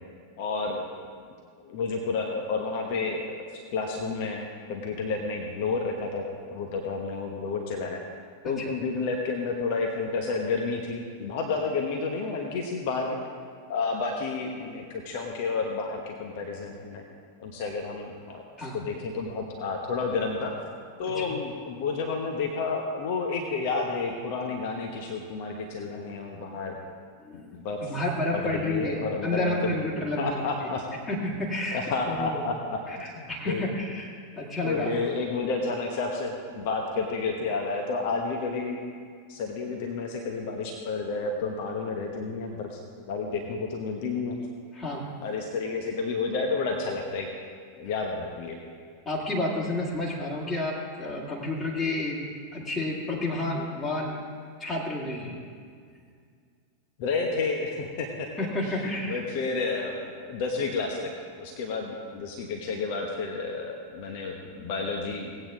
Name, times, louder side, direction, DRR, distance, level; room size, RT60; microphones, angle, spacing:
voice 1, 0.4-0.9 1.6-3.4 3.7-6.2 6.5-8.0 8.4-13.2 13.7-17.0 17.4-18.4 18.7-20.5 21.0-26.8 27.3-28.0 28.3-29.8 30.2-30.8 31.7-33.7 34.6-38.8 39.3-42.8 43.1-44.4 45.2-47.3 47.7-48.6 57.0-58.3 58.6-61.1 61.4-65.4, left 4 dB, 50° left, 2 dB, 1.1 m, -30 dB
voice 2, 27.2-30.4 31.1-32.4 32.9-34.9 44.7-45.0 49.1-54.2 54.6-55.4 58.4-59.2, left 1 dB, 25° left, -4 dB, 2.2 m, -30 dB
17.5 x 8.8 x 3.7 m, 2.1 s
figure-of-eight pair, 90°, 0 cm